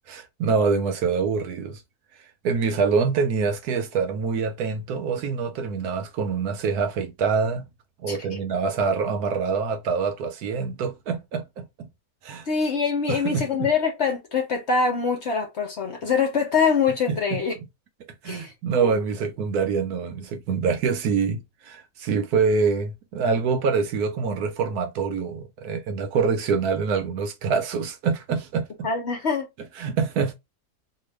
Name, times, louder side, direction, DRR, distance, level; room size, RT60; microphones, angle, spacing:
voice 1, 0.1-1.8 2.4-7.7 8.0-11.9 12.2-12.5 13.1-13.7 17.1-17.4 18.2-28.9 29.8-30.3, right 5 dB, 70° right, 1.1 m, -25 dB
voice 2, 12.5-17.5 18.2-18.5 18.8-18.9 28.8-29.5, left 5 dB, 50° left, 0.9 m, -24 dB
2.8 x 2.5 x 3.1 m
omnidirectional pair, 1.8 m